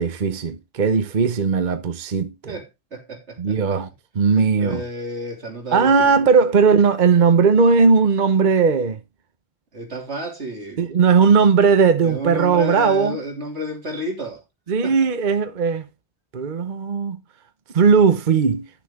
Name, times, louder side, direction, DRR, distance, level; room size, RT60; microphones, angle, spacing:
voice 1, 0.0-2.5 3.4-3.9 4.1-4.8 5.7-9.0 10.8-13.2 14.7-15.8 16.3-17.2 17.7-18.7, right 5 dB, 50° right, 1.0 m, -17 dB
voice 2, 2.5-3.8 4.4-6.2 9.7-10.9 12.0-14.4 14.8-14.9, right 1 dB, 80° right, 3.3 m, -31 dB
12.0 x 7.0 x 3.6 m
omnidirectional pair, 1.1 m